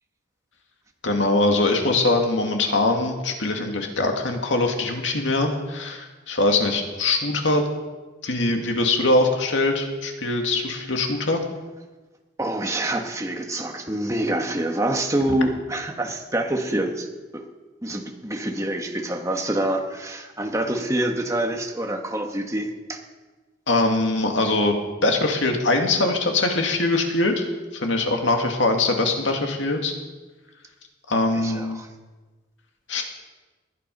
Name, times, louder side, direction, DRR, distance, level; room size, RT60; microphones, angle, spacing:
voice 1, 1.0-7.6 8.2-11.4 23.7-24.8 25.0-27.4 27.7-29.9 31.1-31.8 32.9-33.0, left 2 dB, 80° left, 3 dB, 2.3 m, -22 dB
voice 2, 12.4-17.1 17.3-17.4 17.8-23.0 31.3-31.9, right 1 dB, 15° right, 3 dB, 1.5 m, -26 dB
20.0 x 11.0 x 5.5 m, 1.2 s
head